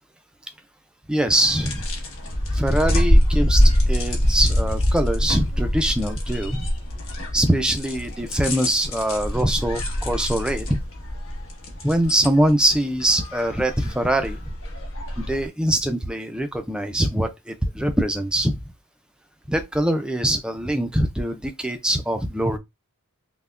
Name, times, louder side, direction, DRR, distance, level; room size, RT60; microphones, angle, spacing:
voice 1, 1.1-1.8 2.5-6.7 7.3-10.8 11.8-14.4 15.2-18.6 19.5-22.6, right 1 dB, 5° right, 0.4 m, -23 dB
sound 1, 1.3-15.5, equal, 70° left, 1.3 m, -24 dB
5.5 x 2.2 x 2.4 m
head